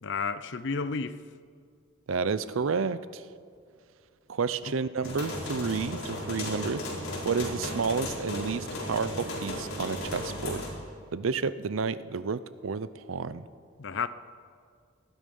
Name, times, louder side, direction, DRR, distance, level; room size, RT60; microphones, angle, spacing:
voice 1, 0.0-1.2 13.8-14.1, left 5 dB, 60° left, 0.6 m, -31 dB
voice 2, 2.1-3.2 4.3-6.8 7.2-10.7 11.1-13.4, right 5 dB, 80° right, 0.6 m, -30 dB
sound 1, 5.0-10.7, left 1 dB, 80° left, 4.4 m, -35 dB
18.5 x 12.0 x 5.4 m
head